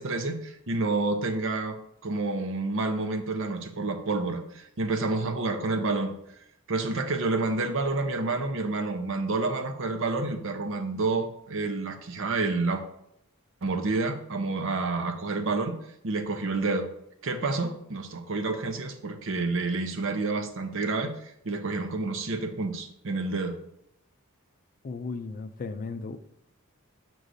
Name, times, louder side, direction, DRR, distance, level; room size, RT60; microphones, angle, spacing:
voice 1, 0.0-6.1 6.7-12.8 13.6-15.7 16.0-16.9 17.2-23.6, right 3 dB, 65° right, 6 dB, 0.7 m, -29 dB
voice 2, 24.8-26.2, left 4 dB, 40° left, 10 dB, 0.4 m, -35 dB
6.4 x 6.1 x 2.6 m, 0.77 s
head